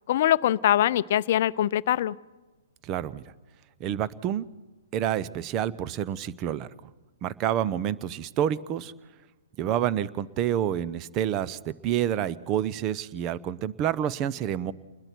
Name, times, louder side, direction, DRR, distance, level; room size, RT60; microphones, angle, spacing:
voice 1, 0.1-2.1, left 12 dB, 55° left, 16 dB, 0.6 m, -23 dB
voice 2, 2.8-3.2 3.8-4.4 4.9-6.7 7.2-8.9 9.6-14.7, right 10 dB, 30° right, 17 dB, 0.7 m, -28 dB
29.5 x 21.0 x 4.6 m, 1.2 s
hypercardioid pair, 125°, 0 cm